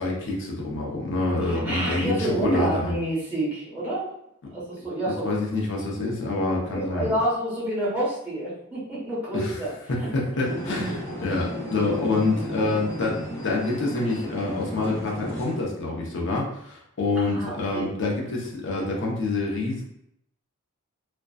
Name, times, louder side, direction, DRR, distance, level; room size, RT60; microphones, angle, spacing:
voice 1, 0.0-2.9 5.2-7.1 9.3-19.8, left 2 dB, 60° left, -2 dB, 0.6 m, -27 dB
voice 2, 1.4-4.1 4.5-5.3 6.7-9.7 10.0-10.1 10.9-11.0 11.3-11.4 17.2-17.9, right 1 dB, 10° right, -9 dB, 1.1 m, -28 dB
sound 1, 10.4-15.5, left 1 dB, 10° left, 0.8 m, -34 dB
2.5 x 2.2 x 2.3 m, 0.77 s
head